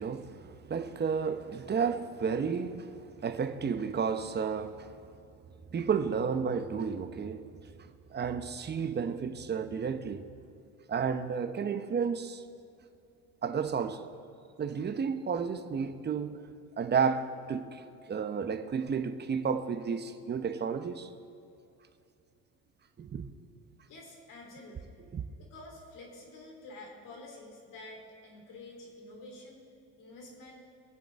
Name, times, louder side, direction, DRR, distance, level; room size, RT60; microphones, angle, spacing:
voice 1, 0.0-5.0 5.7-7.5 7.8-10.3 10.9-12.4 13.4-14.1 14.6-16.4 16.8-17.8 18.1-21.1 23.0-23.3 25.1-25.3, right 6 dB, 30° right, 0.9 m, -32 dB
voice 2, 23.9-24.9 25.4-29.6 30.0-30.6, left 2 dB, 60° left, 3.7 m, -49 dB
23.5 x 7.9 x 3.7 m
supercardioid pair, 90°, 35 cm